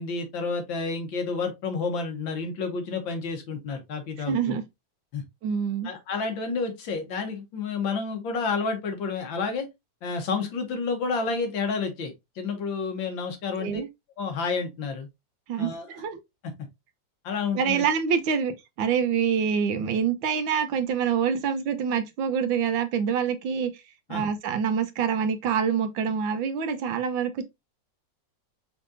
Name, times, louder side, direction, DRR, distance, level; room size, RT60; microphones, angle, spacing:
voice 1, 0.0-4.6 5.1-5.2 5.8-9.7 10.0-13.8 14.2-15.1 15.6-15.9 17.2-17.8 24.1-24.2, left 4 dB, 85° left, 1.9 m, -30 dB
voice 2, 4.3-4.6 5.4-5.9 13.6-13.9 15.5-16.2 17.6-23.8 24.1-27.4, right 7 dB, 85° right, 1.6 m, -26 dB
5.2 x 3.6 x 2.6 m
omnidirectional pair, 2.0 m